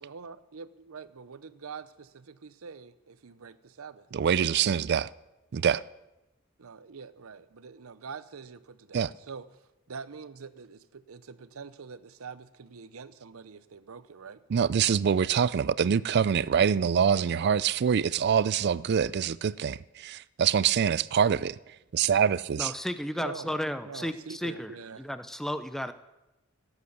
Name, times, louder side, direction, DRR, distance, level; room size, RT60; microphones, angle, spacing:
voice 1, 0.0-4.1 6.6-9.5 9.9-14.4 23.2-25.1, right 5 dB, 85° right, 0.7 m, -45 dB
voice 2, 4.1-5.1 5.5-5.8 8.9-9.1 14.5-21.6 21.9-22.7, right 7 dB, 55° right, 0.4 m, -25 dB
voice 3, 22.6-24.7 25.0-25.9, equal, ahead, 0.5 m, -33 dB
17.0 x 8.1 x 6.7 m
head